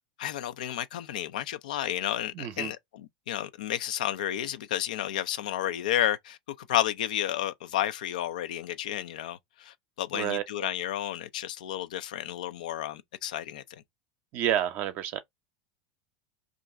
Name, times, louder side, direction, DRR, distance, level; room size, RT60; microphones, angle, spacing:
voice 1, 0.2-13.8, left 12 dB, 80° left, 0.4 m, -32 dB
voice 2, 2.3-2.7 8.9-9.0 10.1-10.4 14.3-15.2, right 11 dB, 55° right, 0.6 m, -29 dB
2.5 x 2.3 x 3.8 m
hypercardioid pair, 110°, 4 cm